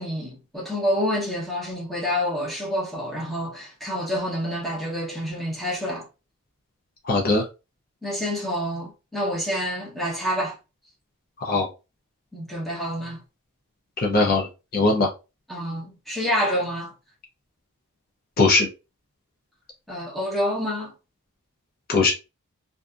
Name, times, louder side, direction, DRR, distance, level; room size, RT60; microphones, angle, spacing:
voice 1, 0.0-6.1 8.0-10.6 12.3-13.2 15.5-16.9 19.9-20.9, equal, ahead, 0.8 m, -28 dB
voice 2, 7.0-7.5 11.4-11.7 14.0-14.5 14.7-15.1 18.4-18.7 21.9-22.1, left 3 dB, 40° left, 0.6 m, -20 dB
2.6 x 2.5 x 2.3 m
head